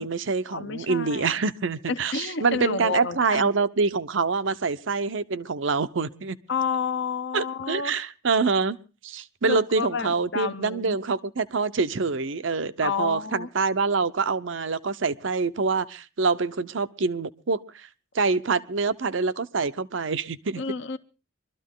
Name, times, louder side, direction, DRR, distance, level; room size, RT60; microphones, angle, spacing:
voice 1, 0.0-6.4 7.3-8.8 9.0-17.9 18.1-20.6, right 4 dB, 75° right, 14 dB, 0.7 m, -26 dB
voice 2, 0.5-1.3 1.9-3.5 6.5-8.0 9.4-11.0 12.8-13.5 20.6-21.0, left 5 dB, 60° left, 9 dB, 0.8 m, -30 dB
23.5 x 13.0 x 3.7 m, 0.32 s
head